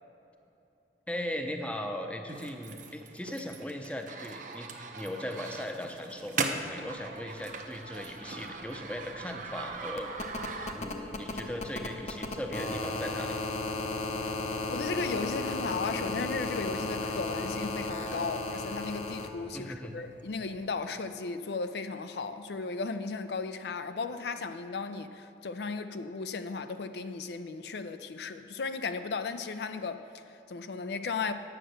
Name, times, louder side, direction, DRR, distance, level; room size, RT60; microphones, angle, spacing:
voice 1, 1.1-10.1 10.7-13.4 19.5-19.9, left 1 dB, 5° left, 0.6 m, -38 dB
sound 1, 2.3-11.1, right 4 dB, 45° right, 0.7 m, -39 dB
sound 2, 8.1-8.2 8.4-19.3 20.7-20.8, left 2 dB, 40° left, 0.7 m, -35 dB
voice 2, 14.7-31.3, left 4 dB, 70° left, 0.4 m, -35 dB
9.8 x 7.7 x 6.3 m
head